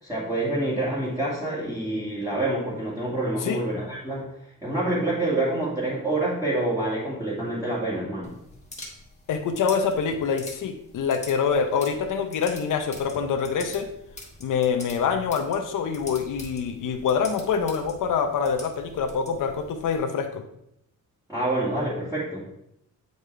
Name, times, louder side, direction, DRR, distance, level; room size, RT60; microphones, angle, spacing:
voice 1, 0.0-4.3 4.6-8.3 21.3-22.5, right 2 dB, 10° right, -10 dB, 2.2 m, -27 dB
sound 1, 8.2-20.0, left 2 dB, 20° left, 1.6 m, -45 dB
voice 2, 9.3-13.9 14.4-20.4, left 6 dB, 75° left, 5 dB, 0.8 m, -25 dB
8.0 x 5.2 x 3.3 m, 0.77 s
cardioid pair, 110°, 32 cm